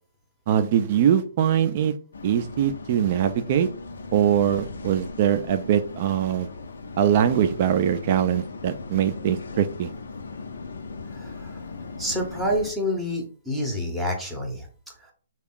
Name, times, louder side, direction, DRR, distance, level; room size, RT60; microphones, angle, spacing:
voice 1, 0.5-1.9 2.2-3.7 4.1-6.5 7.0-9.9, right 9 dB, 35° right, 10 dB, 0.3 m, -22 dB
sound 1, 2.1-12.7, left 3 dB, 85° left, 0.6 m, -38 dB
voice 2, 11.1-11.6 12.0-15.1, equal, ahead, 0 dB, 0.7 m, -28 dB
3.5 x 2.3 x 3.6 m, 0.39 s
hypercardioid pair, 165°, 0 cm